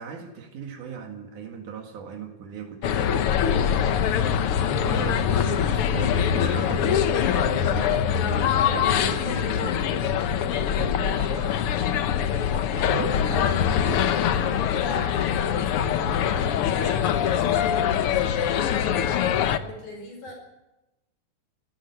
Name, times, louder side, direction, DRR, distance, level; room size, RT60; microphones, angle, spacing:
voice 1, 0.0-9.9, right 6 dB, 85° right, 2 dB, 3.4 m, -38 dB
sound 1, 2.8-19.6, left 9 dB, 65° left, 1.5 m, -23 dB
sound 2, 5.3-6.6 7.1-14.0, right 10 dB, 65° right, 1.7 m, -40 dB
voice 2, 12.9-18.9 19.6-20.3, left 1 dB, 85° left, 3 dB, 6.5 m, -41 dB
17.5 x 15.5 x 9.8 m, 0.97 s
omnidirectional pair, 3.5 m